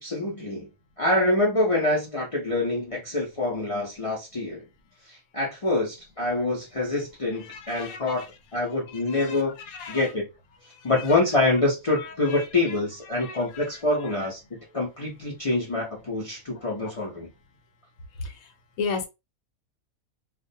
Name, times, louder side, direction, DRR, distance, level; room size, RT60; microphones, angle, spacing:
voice 1, 0.0-0.7 1.0-4.6 5.1-8.2 8.5-9.5 9.9-10.3 10.8-14.4 14.7-17.3, left 2 dB, 50° left, 0.4 m, -26 dB
voice 2, 7.3-8.3 8.6-10.1 10.7-11.2 11.9-14.3 14.7-14.8 16.5-16.9 18.1-19.1, left 4 dB, 80° left, 1.1 m, -38 dB
2.3 x 2.1 x 2.6 m
omnidirectional pair, 1.5 m